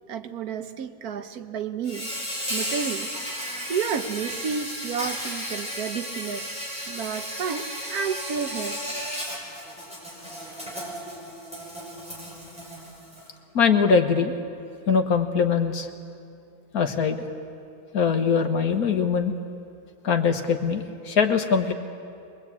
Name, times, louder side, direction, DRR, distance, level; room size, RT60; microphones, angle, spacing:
voice 1, 0.1-2.1 2.5-3.1 3.7-8.8, right 7 dB, 80° right, 9 dB, 1.5 m, -31 dB
Insect, 1.8-13.3, equal, 5° right, 5.5 m, -34 dB
voice 2, 13.5-14.3 14.9-15.9 16.7-17.2 17.9-19.3 20.0-21.7, left 6 dB, 75° left, 6 dB, 1.9 m, -22 dB
23.0 x 21.0 x 8.5 m, 2.4 s
omnidirectional pair, 1.6 m